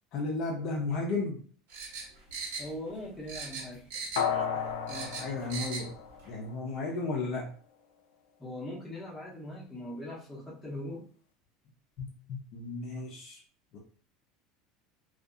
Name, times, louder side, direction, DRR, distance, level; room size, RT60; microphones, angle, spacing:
voice 1, 0.1-1.4 5.2-5.9 6.3-7.5 12.0-13.4 13.7-13.8, left 3 dB, 40° left, 0 dB, 0.5 m, -34 dB
sound 1, 1.7-3.0 3.3-4.4 4.7-5.9 6.2-6.3, right 4 dB, 90° right, 1.1 m, -39 dB
voice 2, 2.6-3.8 4.9-5.2 8.4-11.0, left 1 dB, 10° left, -5 dB, 0.7 m, -41 dB
sound 2, 4.2-6.7 7.1-7.2, left 7 dB, 90° left, 0.5 m, -34 dB
2.6 x 2.4 x 2.4 m, 0.43 s
cardioid pair, 175°, 0 cm